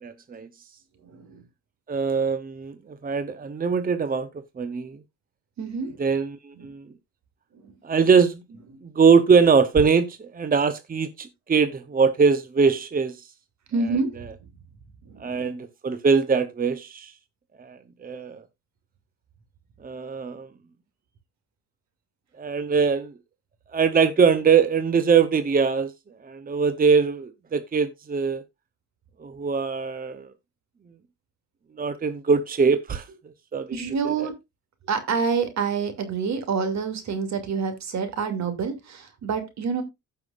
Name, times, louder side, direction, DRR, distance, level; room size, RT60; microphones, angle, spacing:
voice 1, 0.0-0.5 1.9-4.3 4.6-5.0 6.0-6.8 7.8-8.4 8.8-13.2 15.2-17.1 17.6-18.4 19.8-20.5 22.4-23.1 23.7-25.9 26.2-28.4 29.2-30.3 31.8-33.1 33.5-33.7 34.0-34.3, right 5 dB, 30° right, 0.9 m, -22 dB
voice 2, 1.0-1.4 5.6-6.0 6.6-6.7 7.5-7.7 13.7-14.3 15.0-15.5 33.7-34.3 34.9-39.8, right 5 dB, 65° right, 2.6 m, -27 dB
16.0 x 5.8 x 2.5 m
cardioid pair, 90°, 30 cm